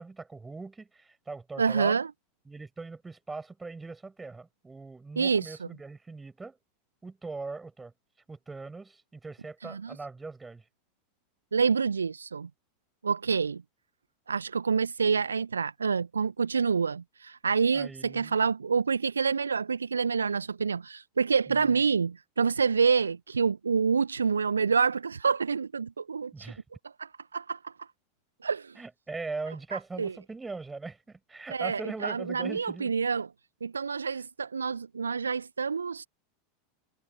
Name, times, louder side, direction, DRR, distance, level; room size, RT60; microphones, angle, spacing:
voice 1, 0.0-2.0 2.5-6.6 7.0-7.9 8.3-10.6 17.7-18.4 21.5-21.8 26.3-26.6 28.8-32.9, right 3 dB, 10° right, 6.9 m, -40 dB
voice 2, 1.6-2.1 5.2-5.4 9.6-9.9 11.5-12.5 13.0-13.6 14.3-26.3 27.0-27.7 28.4-28.7 30.0-30.1 31.5-33.3 33.6-36.0, right 5 dB, 75° right, 1.4 m, -27 dB
figure-of-eight pair, 85°, 0 cm